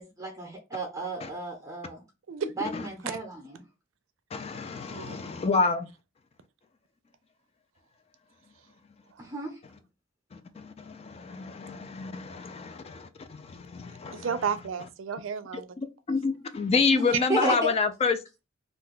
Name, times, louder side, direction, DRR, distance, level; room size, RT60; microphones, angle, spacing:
voice 1, 0.0-2.0 2.6-3.6 9.2-9.5 16.9-17.7, right 1 dB, 15° right, 0.6 m, -32 dB
voice 2, 4.3-5.9 10.3-14.4 15.8-18.2, left 4 dB, 30° left, 0.3 m, -28 dB
voice 3, 4.9-5.2 14.1-15.7, right 6 dB, 80° right, 0.4 m, -32 dB
2.5 x 2.2 x 3.6 m
head